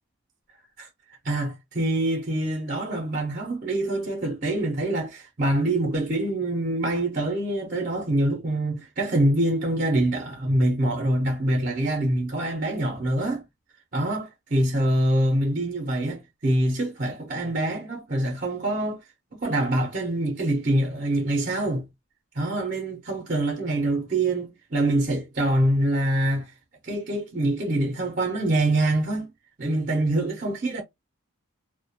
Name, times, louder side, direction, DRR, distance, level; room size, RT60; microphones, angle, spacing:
voice 1, 1.2-13.4 13.9-19.0 19.3-21.8 22.3-26.5 26.8-29.3 29.6-30.8, right 1 dB, 40° right, 0.5 m, -25 dB
2.3 x 2.1 x 2.7 m
head